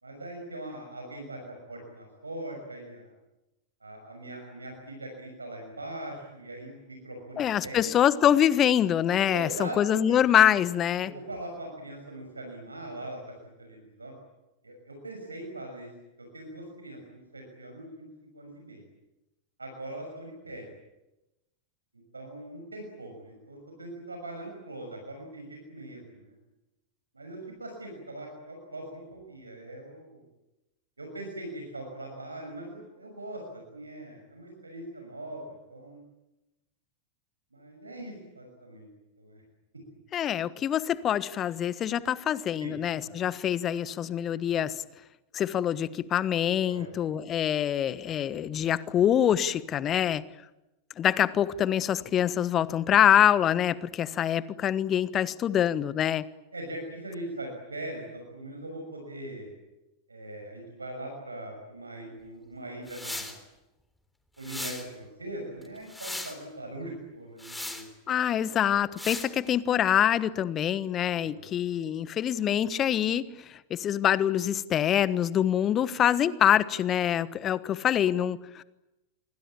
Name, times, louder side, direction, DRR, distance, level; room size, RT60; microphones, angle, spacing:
voice 1, 0.0-3.1 3.8-7.9 9.3-9.8 10.1-10.2 11.0-13.2 13.4-14.1 14.6-15.9 16.2-18.1 18.3-18.8 19.6-20.7 21.9-26.4 27.1-30.2 31.0-36.0 37.5-38.9 39.2-39.4 42.6-43.1 46.6-46.9 56.5-59.5 60.1-63.4 64.4-67.9 71.1-71.5, right 1 dB, 80° right, 2 dB, 6.2 m, -41 dB
voice 2, 7.4-11.1 40.1-44.7 45.3-50.2 51.0-56.3 68.1-78.6, left 10 dB, 30° left, 17 dB, 1.3 m, -25 dB
sound 1, 62.9-63.4 64.4-64.9 65.6-66.4 67.4-67.9 69.0-69.3, left 1 dB, 5° left, 3.7 m, -37 dB
27.5 x 24.0 x 8.7 m, 0.97 s
figure-of-eight pair, 90°, 0 cm